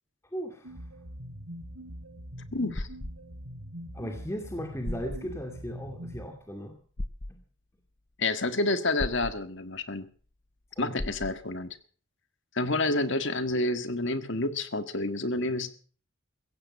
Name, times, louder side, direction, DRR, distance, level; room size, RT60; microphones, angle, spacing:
voice 1, 0.3-0.8 3.9-6.8 10.8-11.0, equal, 15° left, 4 dB, 2.3 m, -37 dB
sound 1, 0.6-6.3, equal, 85° right, 3.5 m, -43 dB
voice 2, 2.5-2.9 8.2-10.1 10.8-11.8 12.5-15.7, left 2 dB, 55° left, 11 dB, 1.6 m, -29 dB
sound 2, 2.7-3.1 4.4-4.5 4.8-5.2 7.0-7.3 9.0-9.4 11.0-11.4, left 1 dB, 35° left, 0.8 m, -35 dB
16.0 x 15.5 x 5.5 m, 0.43 s
head